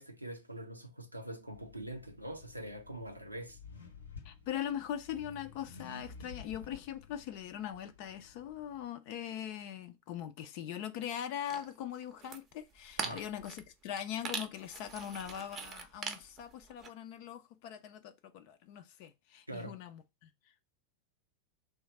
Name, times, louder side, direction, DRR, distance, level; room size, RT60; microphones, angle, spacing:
voice 1, 0.0-3.6 13.0-13.2 19.5-19.8, right 1 dB, 85° right, 0.5 m, -44 dB
Accelerating revving vroom, 1.5-8.9, left 5 dB, 80° left, 0.7 m, -53 dB
voice 2, 4.2-20.3, left 10 dB, 45° left, 0.4 m, -41 dB
sound 1, 11.5-11.8 12.0-12.4 12.8-13.7 14.0-14.1 14.2-16.9, right 5 dB, 25° right, 0.6 m, -41 dB
3.1 x 2.4 x 4.0 m
figure-of-eight pair, 90°, 0 cm